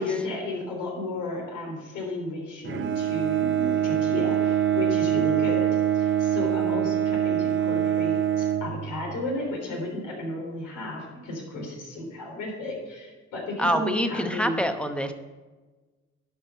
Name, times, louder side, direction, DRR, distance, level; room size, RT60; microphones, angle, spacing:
voice 1, 0.0-14.6, left 2 dB, 85° left, -1 dB, 3.5 m, -33 dB
Bowed string instrument, 2.6-9.3, right 10 dB, 40° right, 0.7 m, -24 dB
voice 2, 13.6-15.1, equal, 5° left, 7 dB, 0.9 m, -26 dB
11.0 x 5.7 x 5.6 m, 1.3 s
cardioid pair, 90°, 30 cm